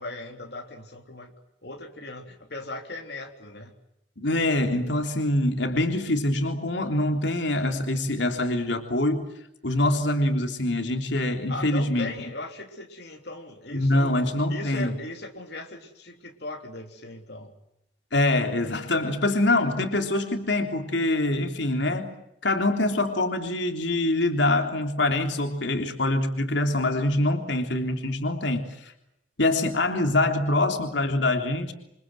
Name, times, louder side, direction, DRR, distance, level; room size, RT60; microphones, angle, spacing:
voice 1, 0.0-3.8 11.5-14.1 14.5-17.6, left 2 dB, 65° left, 2 dB, 3.5 m, -38 dB
voice 2, 4.2-9.3 9.6-12.1 13.7-14.9 18.1-22.1 22.4-28.9 29.4-31.7, left 1 dB, 80° left, 4 dB, 3.4 m, -24 dB
28.0 x 25.5 x 7.7 m, 0.82 s
head